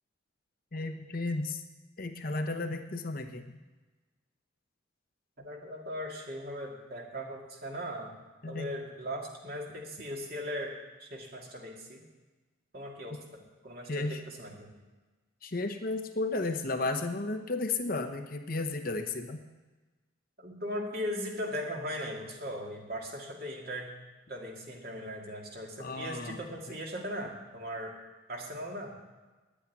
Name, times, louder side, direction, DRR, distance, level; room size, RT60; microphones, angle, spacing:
voice 1, 0.7-1.6 2.0-3.6 8.4-8.8 13.9-14.2 15.4-19.4 25.8-26.4, left 2 dB, 45° left, 6 dB, 0.9 m, -33 dB
voice 2, 5.4-8.1 8.5-10.7 11.0-12.0 12.7-14.7 20.4-23.9 24.3-27.9 28.3-29.0, equal, 50° right, -1 dB, 2.5 m, -38 dB
10.5 x 8.6 x 9.4 m, 1.2 s
head